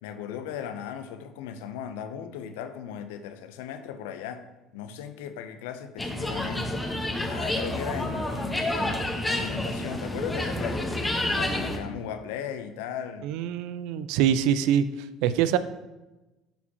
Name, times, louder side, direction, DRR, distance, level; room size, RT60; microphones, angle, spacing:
voice 1, 0.0-4.4 4.7-6.9 7.3-11.1 11.4-13.3, left 8 dB, 80° left, 9 dB, 0.5 m, -37 dB
sound 1, 6.0-11.8, left 1 dB, 10° left, 1.0 m, -29 dB
voice 2, 13.2-14.9 15.2-15.6, right 10 dB, 75° right, 14 dB, 0.4 m, -24 dB
11.5 x 4.2 x 2.8 m, 1.1 s
hypercardioid pair, 70°, 0 cm